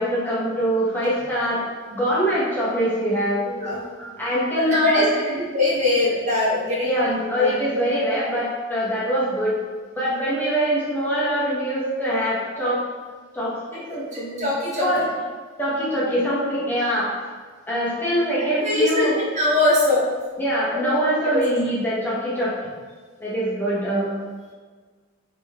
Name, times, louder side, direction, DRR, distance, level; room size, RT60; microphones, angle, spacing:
voice 1, 0.0-1.6 1.9-3.4 4.0-5.3 6.9-9.5 10.0-12.8 13.3-14.5 14.8-15.0 15.6-17.1 17.7-19.2 20.4-22.5 23.2-24.1, equal, 10° left, -8 dB, 0.9 m, -23 dB
voice 2, 3.4-3.8 4.5-5.0 5.3-7.6 13.9-14.9 16.7-16.9 18.4-19.1 19.3-20.0 20.7-21.0 21.3-21.4, left 2 dB, 35° right, -5 dB, 0.9 m, -22 dB
3.8 x 3.4 x 3.5 m, 1.5 s
head